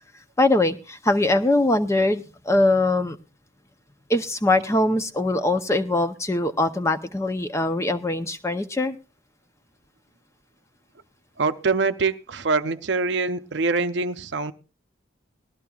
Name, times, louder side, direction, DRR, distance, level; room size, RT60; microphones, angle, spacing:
voice 1, 0.4-3.2 4.1-9.0, left 2 dB, 15° left, 0.6 m, -22 dB
voice 2, 11.4-14.5, right 4 dB, 60° right, 0.6 m, -24 dB
19.0 x 13.0 x 2.3 m
head